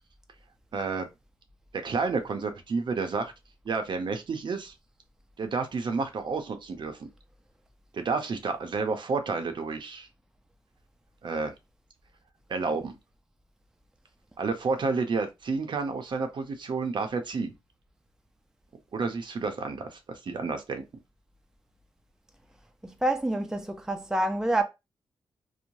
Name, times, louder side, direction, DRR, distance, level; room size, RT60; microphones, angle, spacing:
voice 1, 0.7-1.1 1.7-3.3 3.6-4.7 5.4-7.1 7.9-10.1 11.2-11.5 12.5-13.0 14.4-17.5 18.9-20.8, right 4 dB, 55° right, 0.6 m, -30 dB
voice 2, 22.8-24.6, right 1 dB, 5° right, 0.4 m, -27 dB
3.1 x 2.1 x 2.6 m
cardioid pair, 75°, 9 cm